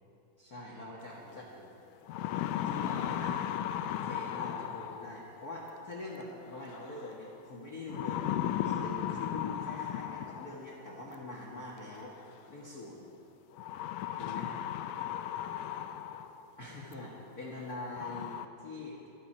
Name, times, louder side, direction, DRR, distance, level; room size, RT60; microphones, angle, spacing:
voice 1, 0.4-1.4 2.6-3.4 3.9-12.1 12.5-13.0 14.2-14.6 16.6-19.0, left 2 dB, 55° left, -4 dB, 1.0 m, -43 dB
voice 2, 1.0-1.7 4.2-4.8 13.1-13.3 14.7-15.2 15.6-16.1, right 1 dB, 25° right, -6 dB, 3.0 m, -59 dB
sound 1, 1.3-1.4 1.9-5.3 6.7-7.1 7.9-10.7 12.0-12.1 13.6-16.4 16.9-17.0 17.6-17.7 17.9-18.5, left 11 dB, 80° left, 2.1 m, -36 dB
24.5 x 9.1 x 5.5 m, 2.8 s
omnidirectional pair, 4.1 m